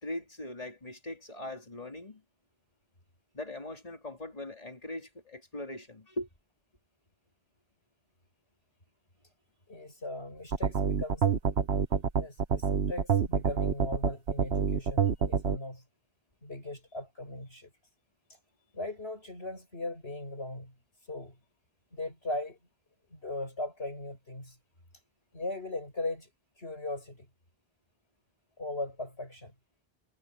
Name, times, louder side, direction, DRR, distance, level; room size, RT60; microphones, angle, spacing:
voice 1, 0.0-2.2 3.3-6.3, left 1 dB, 35° left, 3.8 m, -40 dB
voice 2, 9.7-11.3 12.2-15.8 16.4-17.7 18.3-18.4 18.7-21.4 21.9-22.6 23.1-24.6 25.3-26.3 26.6-27.3 28.6-29.5, left 2 dB, 85° left, 7.9 m, -39 dB
sound 1, 10.5-15.6, right 6 dB, 85° right, 1.4 m, -27 dB
omnidirectional pair, 1.0 m